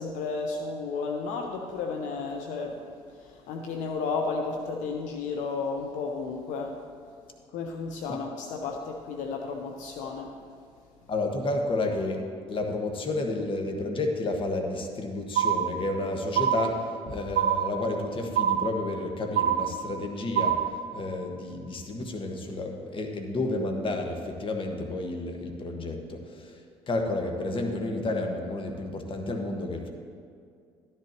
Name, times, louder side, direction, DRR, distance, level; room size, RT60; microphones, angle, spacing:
voice 1, 0.0-2.8 3.2-6.8 7.5-10.3, left 4 dB, 75° left, 2 dB, 0.8 m, -33 dB
voice 2, 11.1-20.6 20.9-26.6 26.9-29.9, left 2 dB, 45° left, 4 dB, 1.4 m, -31 dB
sound 1, 15.4-16.0 16.4-17.0 17.4-18.0 18.4-19.0 19.4-20.0 20.4-20.9, right 9 dB, 80° right, 0.5 m, -25 dB
12.0 x 11.0 x 3.0 m, 2.3 s
supercardioid pair, 70°, 13 cm